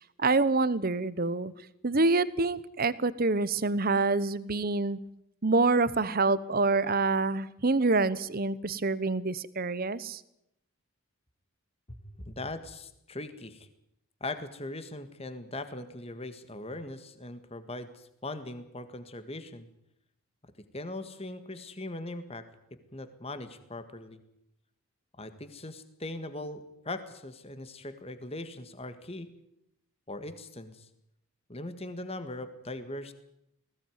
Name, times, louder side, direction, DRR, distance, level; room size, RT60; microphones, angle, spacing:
voice 1, 0.2-1.5 1.8-5.0 5.4-10.2, right 3 dB, 40° right, 17 dB, 0.9 m, -26 dB
voice 2, 11.9-13.7 14.2-19.7 20.7-22.5 22.7-24.2 25.2-29.3 30.1-30.9 31.5-33.1, left 2 dB, 25° left, 10 dB, 1.7 m, -40 dB
20.5 x 17.0 x 9.4 m, 0.80 s
head